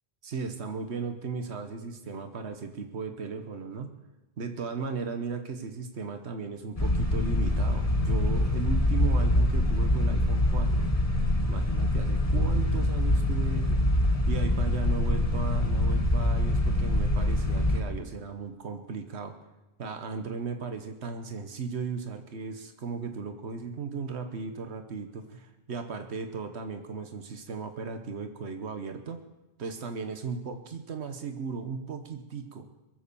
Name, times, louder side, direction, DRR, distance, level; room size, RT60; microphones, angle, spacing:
voice 1, 0.2-3.9 4.4-10.9 11.5-13.9 14.3-19.3 19.8-29.2 29.6-32.6, right 5 dB, 90° right, 7 dB, 1.4 m, -36 dB
sound 1, 6.8-17.8, left 1 dB, 35° left, 1.6 m, -25 dB
21.5 x 7.9 x 6.9 m, 0.99 s
omnidirectional pair, 1.1 m